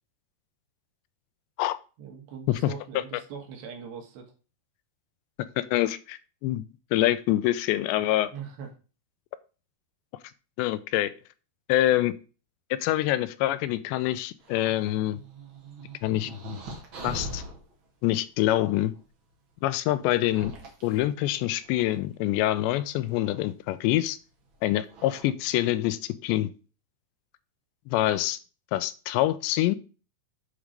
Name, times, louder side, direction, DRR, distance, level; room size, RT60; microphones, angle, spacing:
voice 1, 2.0-4.3 8.3-8.7, right 6 dB, 75° right, 3 dB, 3.9 m, -41 dB
voice 2, 5.6-6.6 6.9-8.3 10.6-11.1 11.7-12.1 12.7-15.2 16.0-16.3 17.0-17.4 18.0-18.9 19.6-20.5 20.8-24.2 24.6-26.5 27.9-28.4 28.7-29.8, left 15 dB, 85° left, 13 dB, 2.9 m, -25 dB
sound 1, 14.4-17.6 18.9-19.0 20.1-21.9 23.0-23.5 24.5-24.6 24.9-25.2, right 1 dB, 50° right, 1.5 m, -41 dB
8.6 x 4.8 x 5.1 m, 0.34 s
omnidirectional pair, 5.1 m